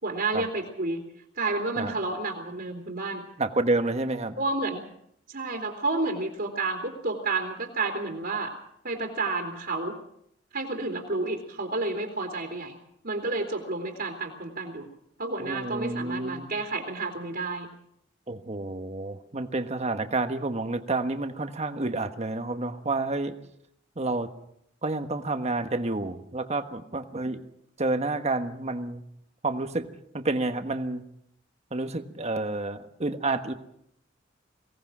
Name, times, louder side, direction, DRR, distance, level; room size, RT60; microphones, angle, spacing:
voice 1, 0.0-1.0 1.4-3.2 4.4-4.8 5.3-8.5 8.8-9.9 10.5-12.8 13.0-14.9 15.2-17.7, right 3 dB, 55° right, 1 dB, 3.1 m, -30 dB
voice 2, 3.4-4.4 15.4-16.6 18.3-23.4 24.0-24.3 24.8-27.4 27.8-29.0 29.4-29.9 30.1-31.0 31.7-33.5, right 2 dB, 35° right, 8 dB, 1.4 m, -29 dB
23.5 x 18.0 x 6.2 m, 0.73 s
head